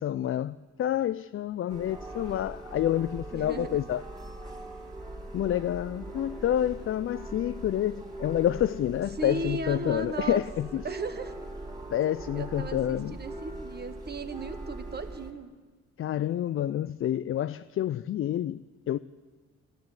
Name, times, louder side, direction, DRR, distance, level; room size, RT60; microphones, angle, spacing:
voice 1, 0.0-4.0 5.3-10.8 11.9-13.2 16.0-19.0, left 11 dB, 45° left, 0.4 m, -28 dB
sound 1, 1.7-15.3, right 2 dB, 15° right, 3.2 m, -41 dB
voice 2, 3.3-3.8 9.2-10.4 10.8-11.3 12.3-15.5, right 3 dB, 35° right, 1.3 m, -36 dB
13.5 x 11.5 x 9.0 m
cardioid pair, 90°, 30 cm